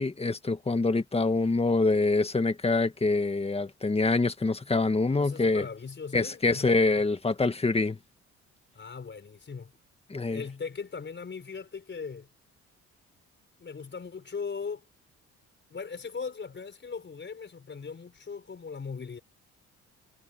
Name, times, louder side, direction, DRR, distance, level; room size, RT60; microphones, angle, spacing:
voice 1, 0.0-5.7 6.1-8.0 10.1-10.4, left 3 dB, 20° left, 1.7 m, -25 dB
voice 2, 5.1-6.8 8.7-9.7 10.3-12.3 13.6-14.8 15.7-19.2, left 5 dB, 40° left, 5.0 m, -39 dB
cardioid pair, 90°, 30 cm